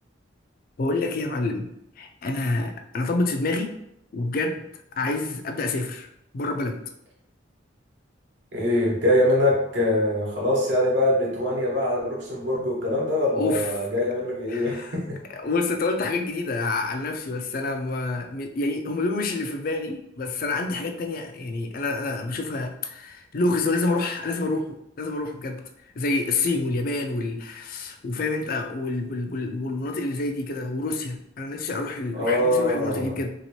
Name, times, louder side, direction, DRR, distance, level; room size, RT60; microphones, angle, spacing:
voice 1, 0.8-1.7 2.0-3.8 4.1-4.6 5.0-6.1 6.3-6.8 13.3-13.7 14.5-15.0 15.3-25.6 26.0-33.3, left 2 dB, 45° left, 5 dB, 0.4 m, -28 dB
voice 2, 8.5-15.2 32.1-33.2, left 1 dB, 65° right, -3 dB, 1.0 m, -23 dB
3.0 x 2.8 x 2.9 m, 0.77 s
head